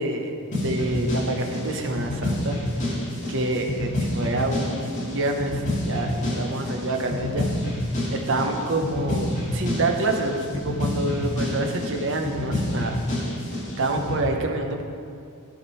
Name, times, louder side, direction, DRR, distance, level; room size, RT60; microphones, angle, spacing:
voice 1, 0.0-2.6 2.8-3.0 3.3-7.5 8.1-13.0 13.8-14.8, right 2 dB, 55° right, 3 dB, 0.9 m, -27 dB
sound 1, 0.5-14.2, left 1 dB, 35° left, 2.1 m, -28 dB
13.0 x 5.1 x 4.2 m, 2.4 s
head